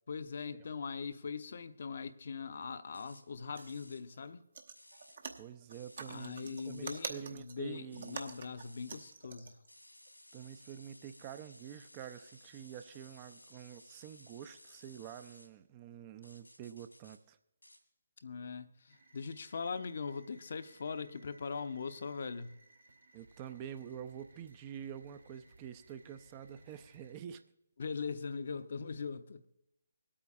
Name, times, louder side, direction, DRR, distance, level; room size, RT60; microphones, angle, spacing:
voice 1, 0.1-4.4 6.1-9.5 18.2-22.5 27.8-29.4, left 5 dB, 55° left, 0.7 m, -41 dB
sound 1, 2.9-3.2 3.5-4.0 4.8-5.2 5.7-7.1 7.9-9.2 9.7-15.5 16.2-17.2 17.6-17.8, left 1 dB, 90° left, 2.4 m, -59 dB
sound 2, 3.6-3.8 4.1-4.3 4.5-9.7 10.1-10.2, right 5 dB, 55° right, 0.9 m, -46 dB
voice 2, 5.4-8.2 10.3-17.4 23.1-27.4, right 9 dB, 25° right, 0.5 m, -47 dB
sound 3, 18.9-27.2, right 2 dB, 70° right, 1.6 m, -63 dB
25.0 x 8.6 x 2.5 m
figure-of-eight pair, 145°, 0 cm